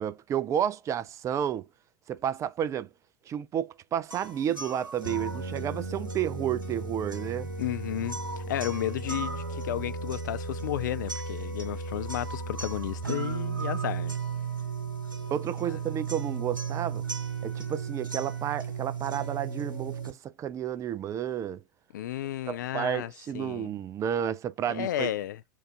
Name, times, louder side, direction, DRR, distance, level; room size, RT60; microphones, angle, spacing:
voice 1, 0.0-1.7 2.1-2.9 3.3-7.5 15.3-17.0 17.4-21.6 22.5-25.1, right 9 dB, 30° right, 0.4 m, -31 dB
sound 1, 4.1-20.1, right 5 dB, 90° right, 1.2 m, -35 dB
voice 2, 7.6-14.2 15.7-16.0 21.9-23.7 24.7-25.4, left 12 dB, 65° left, 0.4 m, -33 dB
4.6 x 2.5 x 3.6 m
figure-of-eight pair, 80°, 11 cm